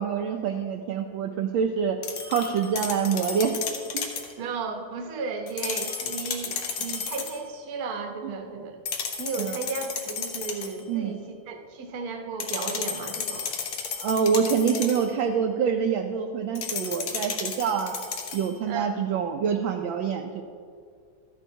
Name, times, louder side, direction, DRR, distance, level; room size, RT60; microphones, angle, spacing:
voice 1, 0.0-2.0 2.3-3.5 3.9-4.1 9.4-9.6 10.9-11.2 14.0-17.9 18.3-20.4, right 6 dB, 75° right, 3 dB, 1.2 m, -26 dB
sound 1, 2.0-4.3 5.5-7.4 8.8-10.8 12.4-15.1 16.5-18.5, left 6 dB, 65° left, 1.5 m, -33 dB
voice 2, 4.4-8.8 9.2-13.5 18.7-18.9, right 4 dB, 55° right, 4 dB, 1.1 m, -34 dB
13.0 x 9.9 x 2.7 m, 2.2 s
omnidirectional pair, 2.4 m